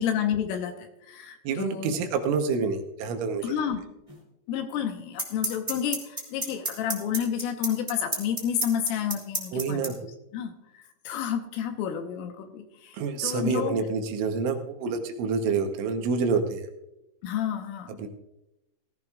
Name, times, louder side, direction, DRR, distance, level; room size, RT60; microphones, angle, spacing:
voice 1, 0.0-2.0 3.4-3.8 4.5-9.8 10.3-13.8 17.2-18.0, left 9 dB, 85° left, 5 dB, 3.5 m, -30 dB
voice 2, 1.4-3.6 9.5-10.0 12.9-16.7 18.0-18.1, right 5 dB, 75° right, 5 dB, 3.2 m, -27 dB
sound 1, 4.1-4.2 5.2-9.9, right 2 dB, 50° right, 0.4 m, -28 dB
18.5 x 15.0 x 2.4 m, 0.90 s
omnidirectional pair, 6.0 m